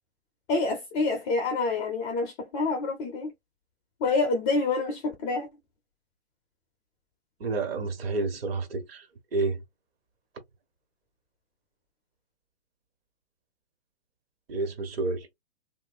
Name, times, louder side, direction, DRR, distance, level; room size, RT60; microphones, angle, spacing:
voice 1, 0.5-3.3 4.0-5.5, left 3 dB, 15° left, 0.4 m, -27 dB
voice 2, 7.4-9.1 9.3-9.6 14.5-15.3, right 3 dB, 65° right, 1.5 m, -29 dB
3.2 x 2.5 x 2.6 m
figure-of-eight pair, 125°, 33 cm